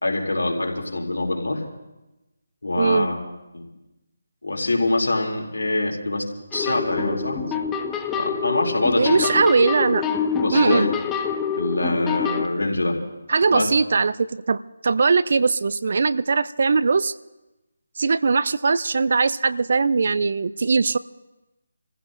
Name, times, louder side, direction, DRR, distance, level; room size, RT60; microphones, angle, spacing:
voice 1, 0.0-1.6 2.6-3.2 3.5-3.6 4.4-6.2 6.5-7.5 8.2-9.3 10.4-10.9 11.6-13.0 13.5-13.7, left 2 dB, 85° left, 1 dB, 2.7 m, -24 dB
voice 2, 2.8-3.1 9.0-10.1 10.5-10.9 13.3-17.1 18.0-21.0, right 4 dB, 55° right, 17 dB, 0.4 m, -20 dB
sound 1, 6.5-12.5, left 7 dB, 10° left, 0.6 m, -26 dB
29.5 x 15.0 x 2.5 m, 1.0 s
figure-of-eight pair, 160°, 0 cm